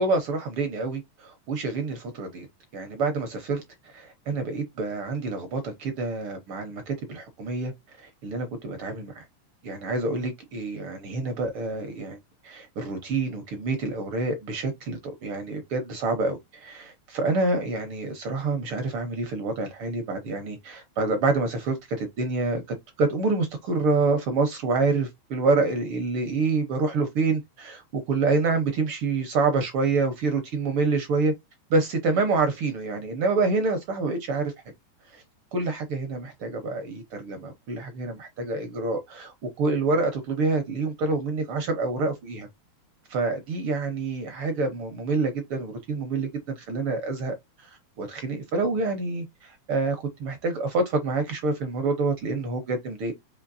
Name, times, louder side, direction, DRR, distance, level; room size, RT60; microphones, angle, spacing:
voice 1, 0.0-2.5 2.7-3.6 3.9-7.7 8.2-9.2 9.6-12.2 12.4-22.6 23.0-31.3 31.7-34.5 35.1-35.2 35.5-42.5 43.1-47.4 47.6-53.1, right 3 dB, 75° right, 1.2 m, -27 dB
5.6 x 2.9 x 2.5 m
omnidirectional pair, 3.5 m